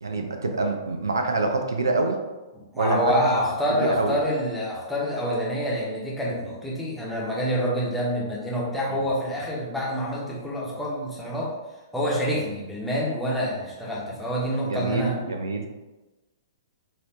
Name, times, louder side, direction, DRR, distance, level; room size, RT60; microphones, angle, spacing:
voice 1, 0.0-2.2 2.8-3.4 3.8-4.1 8.9-9.0 12.3-12.4 14.6-15.7, right 3 dB, 75° right, 4 dB, 0.6 m, -26 dB
voice 2, 2.5-11.5 11.9-15.1, equal, 5° left, -6 dB, 1.0 m, -27 dB
4.1 x 2.8 x 2.8 m, 1.1 s
figure-of-eight pair, 115°, 2 cm